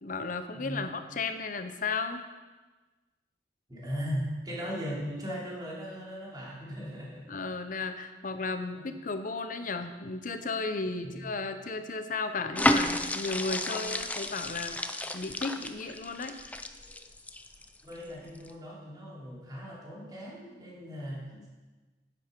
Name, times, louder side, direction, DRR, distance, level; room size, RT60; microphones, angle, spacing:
voice 1, 0.0-2.2 7.3-14.8 15.1-16.4 21.3-21.5, left 3 dB, 50° left, 9 dB, 0.8 m, -34 dB
voice 2, 0.5-0.9 3.7-7.2 8.8-8.9 11.0-11.3 17.8-21.5, equal, 25° right, -5 dB, 3.0 m, -38 dB
sound 1, 12.6-17.9 18.3-18.5, left 1 dB, 10° left, 0.4 m, -31 dB
10.5 x 8.5 x 5.2 m, 1.3 s
head